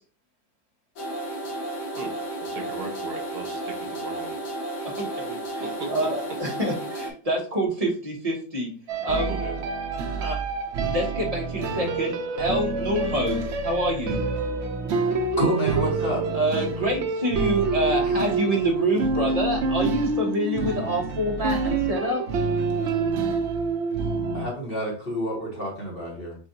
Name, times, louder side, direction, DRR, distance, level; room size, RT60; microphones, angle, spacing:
sound 1, 1.0-7.1, right 1 dB, 90° left, 1.6 m, -33 dB
voice 1, 2.4-4.4 5.6-6.1 9.1-9.6, right 4 dB, 80° right, 3 dB, 1.7 m, -37 dB
voice 2, 4.8-5.6 5.9-8.7 9.0-9.3 10.2-10.4 10.8-14.2 16.3-22.2, equal, 25° right, 0 dB, 1.0 m, -27 dB
sound 2, 8.9-24.4, right 4 dB, 65° right, 0.7 m, -27 dB
voice 3, 15.4-16.2 24.3-26.4, right 1 dB, 35° left, -2 dB, 1.4 m, -28 dB
7.3 x 2.5 x 2.7 m, 0.42 s
omnidirectional pair, 1.8 m